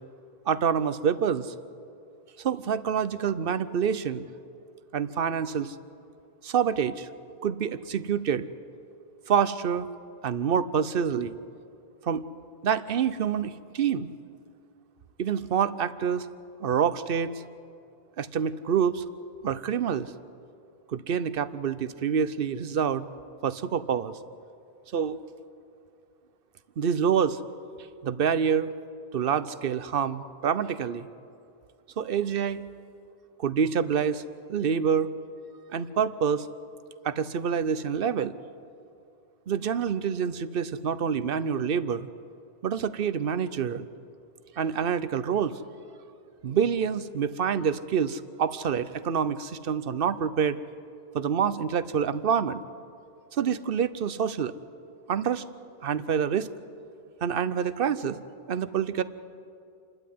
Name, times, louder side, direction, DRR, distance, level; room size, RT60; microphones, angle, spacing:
voice 1, 0.5-1.5 2.4-4.3 4.9-5.7 6.4-7.1 7.4-8.5 9.3-9.9 10.2-11.4 12.0-12.3 12.6-14.1 15.2-16.3 16.6-17.3 18.2-19.0 19.4-20.1 20.9-23.1 23.4-24.2 24.9-25.2 26.8-27.4 28.0-28.7 29.1-31.1 32.0-32.6 33.4-34.2 34.5-35.1 35.7-36.5 37.0-38.3 39.5-42.1 42.6-43.9 44.6-45.6 46.4-50.6 51.1-52.6 53.3-54.5 55.1-55.4 55.8-56.5 57.2-58.2 58.5-59.0, right 7 dB, 60° right, 15 dB, 0.9 m, -27 dB
28.0 x 12.5 x 9.4 m, 2.5 s
omnidirectional pair, 1.1 m